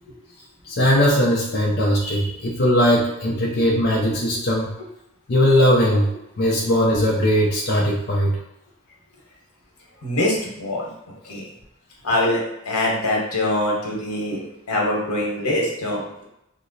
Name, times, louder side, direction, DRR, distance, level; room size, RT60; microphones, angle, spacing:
voice 1, 0.6-4.7 5.3-6.1 6.4-8.4, equal, 45° left, -4 dB, 0.5 m, -19 dB
voice 2, 10.0-10.9 11.2-11.4 12.0-14.4 14.7-16.2, left 1 dB, 90° left, -2 dB, 1.0 m, -23 dB
2.9 x 2.0 x 3.9 m, 0.83 s
head